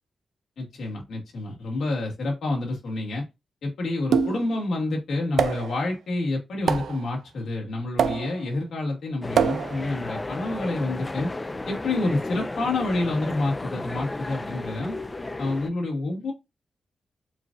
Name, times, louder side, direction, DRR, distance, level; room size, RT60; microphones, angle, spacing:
voice 1, 0.6-3.3 3.6-11.3 11.7-15.0 15.4-16.3, left 2 dB, 85° left, 2.2 m, -28 dB
sound 1, 4.1-4.6 5.4-5.8 6.7-7.1 8.0-8.5 9.4-9.9, right 7 dB, 90° right, 0.4 m, -24 dB
sound 2, 9.2-15.7, left 2 dB, 25° left, 0.5 m, -34 dB
7.7 x 2.6 x 2.5 m
cardioid pair, 65°, 0 cm